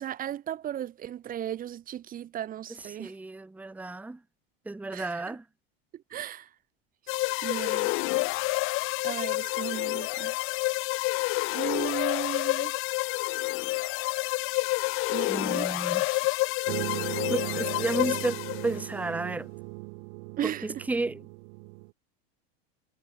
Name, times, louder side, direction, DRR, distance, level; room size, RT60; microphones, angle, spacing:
voice 1, 0.0-3.1 4.9-5.4 5.9-6.5 7.4-7.9 9.0-10.3 11.5-12.8 15.1-15.7 16.1-16.2 20.4-20.8, right 11 dB, 25° right, 2.4 m, -36 dB
voice 2, 3.0-4.2 4.6-5.4 15.2-16.2 17.3-19.5 20.4-21.2, right 2 dB, 5° right, 1.5 m, -32 dB
sound 1, 7.1-18.8, left 23 dB, 40° left, 1.2 m, -29 dB
sound 2, 16.7-21.9, right 34 dB, 55° right, 2.4 m, -37 dB
supercardioid pair, 145°, 31 cm